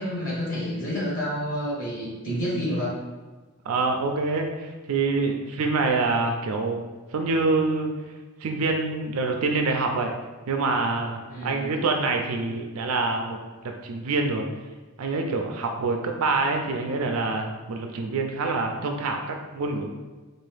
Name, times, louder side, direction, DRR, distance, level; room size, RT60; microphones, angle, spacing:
voice 1, 0.0-3.0 11.3-11.7, equal, 40° left, -6 dB, 1.3 m, -29 dB
voice 2, 3.7-6.8 7.1-7.9 8.4-10.1 10.5-13.4 13.8-14.5 15.0-19.9, right 3 dB, 80° right, 3 dB, 0.4 m, -26 dB
4.0 x 2.6 x 3.4 m, 1.3 s
head